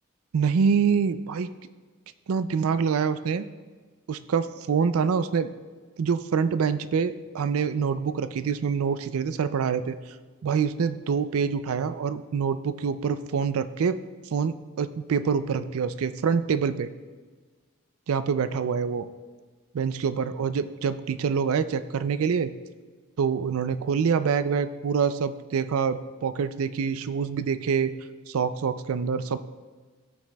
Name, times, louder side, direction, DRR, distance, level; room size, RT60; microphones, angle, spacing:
voice 1, 0.3-1.5 2.3-3.5 4.1-5.5 6.0-10.0 10.4-14.0 14.3-16.9 18.1-19.1 19.7-22.5 23.2-27.9 28.3-29.4, right 6 dB, 75° right, 13 dB, 0.4 m, -26 dB
14.0 x 6.0 x 2.3 m, 1.4 s
head